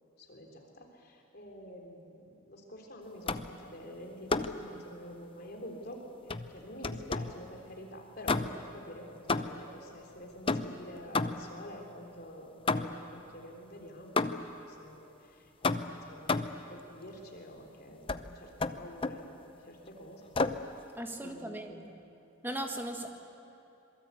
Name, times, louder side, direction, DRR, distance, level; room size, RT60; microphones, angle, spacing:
voice 1, 0.2-14.4 14.7-20.2 21.2-21.8, equal, 50° left, 1 dB, 3.6 m, -48 dB
sound 1, 3.3-3.6 4.3-4.7 6.3-7.4 8.2-8.8 9.3-9.8 10.5-11.6 12.7-13.1 14.2-14.6 15.6-16.7 18.1-18.3 18.6-19.3 20.3-20.7, left 3 dB, 25° left, 0.7 m, -32 dB
voice 2, 20.9-22.0 22.4-23.1, right 1 dB, 10° right, 3 dB, 1.8 m, -38 dB
26.5 x 22.5 x 8.3 m, 2.9 s
head